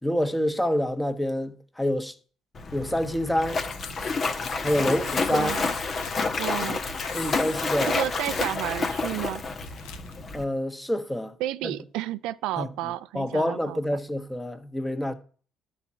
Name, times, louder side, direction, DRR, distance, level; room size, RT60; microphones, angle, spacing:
voice 1, 0.0-2.1 2.7-3.6 4.6-5.6 6.5-6.6 7.1-7.9 10.3-11.3 11.6-11.7 12.6-12.7 13.1-15.1, left 1 dB, 10° left, 1.3 m, -27 dB
Splash splatter, 2.5-10.4, left 4 dB, 45° left, 1.1 m, -29 dB
sound 1, 3.6-10.2, left 7 dB, 85° left, 0.9 m, -44 dB
voice 2, 5.3-5.7 6.4-6.8 7.8-9.4 11.4-13.8, right 14 dB, 80° right, 0.4 m, -31 dB
11.5 x 4.3 x 7.4 m
supercardioid pair, 65°, 0 cm